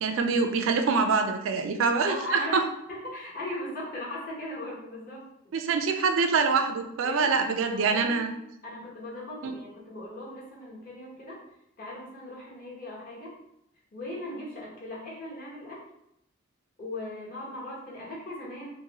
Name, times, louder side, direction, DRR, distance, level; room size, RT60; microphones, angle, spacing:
voice 1, 0.0-2.1 2.5-2.6 5.5-8.3 9.4-9.5, right 4 dB, 70° right, 5 dB, 0.3 m, -25 dB
voice 2, 2.1-5.2 7.0-8.3 8.6-11.4 11.8-13.4 13.9-15.8 16.8-18.7, left 1 dB, 40° left, -5 dB, 0.9 m, -38 dB
2.7 x 2.6 x 2.8 m, 0.78 s
head